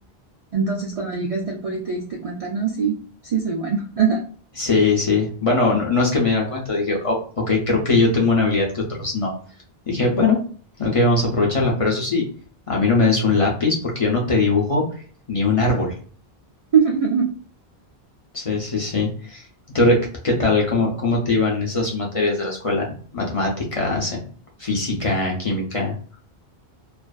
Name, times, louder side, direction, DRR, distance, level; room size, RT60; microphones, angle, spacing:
voice 1, 0.5-2.9 3.2-4.2 16.7-17.3, right 6 dB, 55° right, -1 dB, 0.4 m, -22 dB
voice 2, 4.6-9.3 9.9-10.4 10.8-12.2 12.7-14.9 15.3-16.0 18.3-19.4 19.7-24.2 24.6-25.9, left 3 dB, 40° left, -3 dB, 0.6 m, -21 dB
2.4 x 2.4 x 2.2 m, 0.43 s
omnidirectional pair, 1.1 m